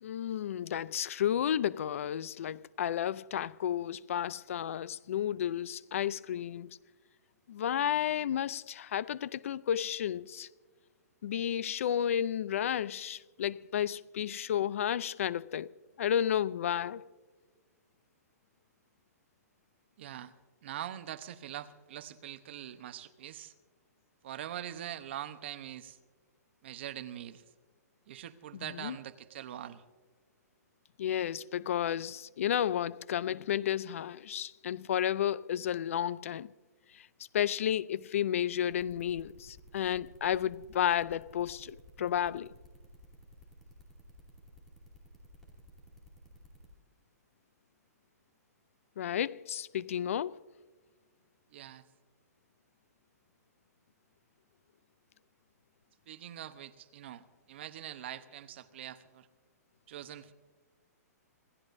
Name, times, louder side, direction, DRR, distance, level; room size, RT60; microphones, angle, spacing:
voice 1, 0.0-6.8 7.5-10.5 11.2-15.7 16.0-17.1 28.5-29.0 31.0-36.5 36.9-37.1 37.3-42.5 49.0-50.4, left 10 dB, 50° left, 0.5 m, -32 dB
voice 2, 20.0-20.3 20.6-23.5 24.2-26.0 26.6-27.4 28.1-29.8 51.5-51.8 56.1-59.3 59.9-60.3, right 11 dB, 40° right, 0.9 m, -43 dB
sound 1, 38.7-46.7, left 2 dB, 5° left, 2.5 m, -56 dB
27.0 x 15.5 x 2.7 m
hypercardioid pair, 170°, 9 cm